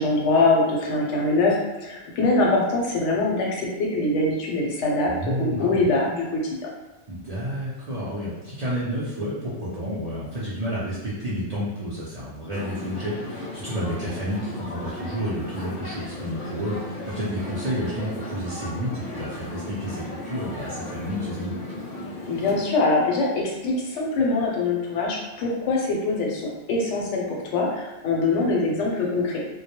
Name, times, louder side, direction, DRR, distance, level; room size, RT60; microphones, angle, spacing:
voice 1, 0.0-6.7 22.3-29.4, left 2 dB, 85° left, -1 dB, 0.9 m, -23 dB
voice 2, 5.0-5.9 7.1-21.5, equal, 50° right, -9 dB, 0.4 m, -30 dB
sound 1, 12.5-22.6, left 1 dB, 55° left, 0.6 m, -36 dB
2.2 x 2.0 x 2.8 m, 1.1 s
omnidirectional pair, 1.2 m